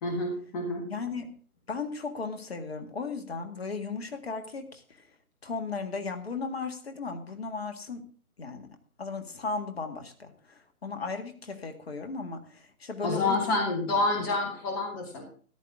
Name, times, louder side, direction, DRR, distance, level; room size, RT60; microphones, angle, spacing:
voice 1, 0.0-0.9 13.0-15.2, left 2 dB, 15° left, 3 dB, 1.6 m, -28 dB
voice 2, 0.9-1.3 1.7-5.0 5.4-8.0 8.4-8.7 9.0-13.4, left 4 dB, 45° left, 6 dB, 1.9 m, -36 dB
13.5 x 12.5 x 3.6 m, 0.42 s
figure-of-eight pair, 145°, 44 cm